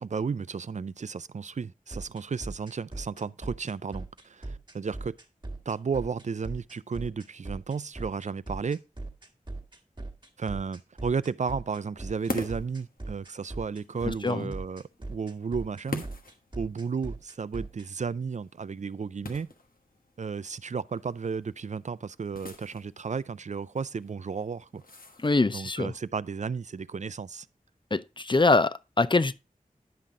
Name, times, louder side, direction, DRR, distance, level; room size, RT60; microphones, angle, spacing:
voice 1, 0.0-5.2 5.7-8.8 10.4-16.1 16.6-19.5 20.2-24.8 25.5-27.5, right 5 dB, 55° right, 0.4 m, -33 dB
sound 1, 1.9-17.9, right 2 dB, 30° right, 1.6 m, -39 dB
sound 2, 12.2-25.7, left 3 dB, 85° left, 1.3 m, -45 dB
voice 2, 14.0-14.5 25.2-25.9 27.9-29.3, left 3 dB, 35° left, 0.5 m, -24 dB
10.5 x 5.8 x 3.7 m
wide cardioid pair, 55°, 14 cm